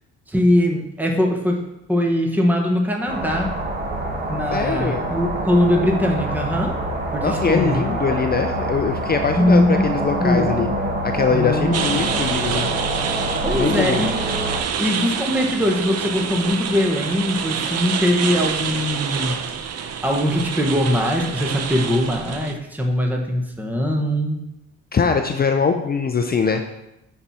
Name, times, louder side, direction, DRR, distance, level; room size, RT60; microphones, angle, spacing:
voice 1, 0.3-1.6 1.9-3.6 4.3-6.8 7.1-7.8 9.4-9.9 10.2-10.7 11.3-12.3 13.4-14.1 14.8-19.4 19.7-24.4, left 1 dB, 5° right, 2 dB, 1.2 m, -21 dB
sound 1, 3.1-14.6, right 1 dB, 30° right, 1.7 m, -26 dB
voice 2, 4.5-5.1 7.2-10.7 11.0-12.7 13.5-14.1 24.9-26.8, left 5 dB, 30° left, 6 dB, 0.6 m, -22 dB
sound 2, 11.7-22.5, right 7 dB, 55° right, 0.7 m, -27 dB
9.7 x 4.8 x 4.2 m, 0.89 s
cardioid pair, 90°, 30 cm